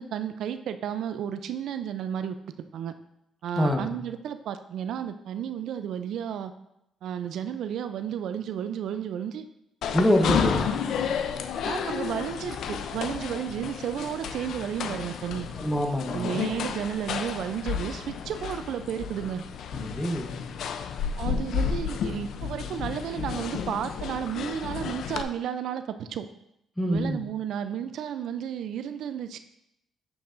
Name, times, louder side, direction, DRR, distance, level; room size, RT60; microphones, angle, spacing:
voice 1, 0.0-2.4 2.7-2.9 3.4-6.5 7.0-9.5 10.2-10.5 11.6-15.5 16.1-19.4 21.2-26.3 26.8-29.4, right 9 dB, 75° right, 10 dB, 0.4 m, -32 dB
voice 2, 3.6-4.0 9.9-10.8 15.6-16.4 19.7-20.4 26.8-27.2, equal, 10° left, 4 dB, 0.9 m, -25 dB
sound 1, 9.8-25.2, left 7 dB, 70° left, 0.4 m, -32 dB
7.2 x 6.9 x 2.5 m, 0.81 s
cardioid pair, 90°, 0 cm